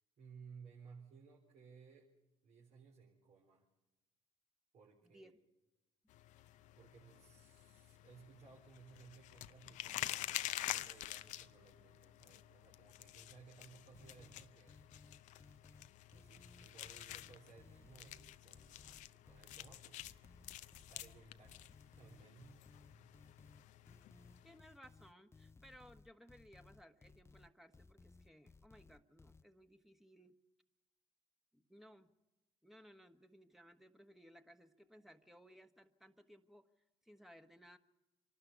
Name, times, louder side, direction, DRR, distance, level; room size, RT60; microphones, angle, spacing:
voice 1, 0.2-2.1 2.4-3.7 4.7-5.3 6.8-14.9 16.1-20.2 20.7-22.6 22.9-23.1, right 5 dB, 65° right, -3 dB, 4.0 m, -60 dB
sound 1, 6.1-24.6, left 14 dB, 75° left, 0.6 m, -49 dB
sound 2, 13.9-29.4, left 4 dB, 20° left, 0.6 m, -62 dB
voice 2, 24.4-30.4 31.5-32.1 32.6-36.7 37.0-37.8, equal, ahead, 7 dB, 1.4 m, -61 dB
25.5 x 12.5 x 8.4 m, 1.0 s
supercardioid pair, 65°, 13 cm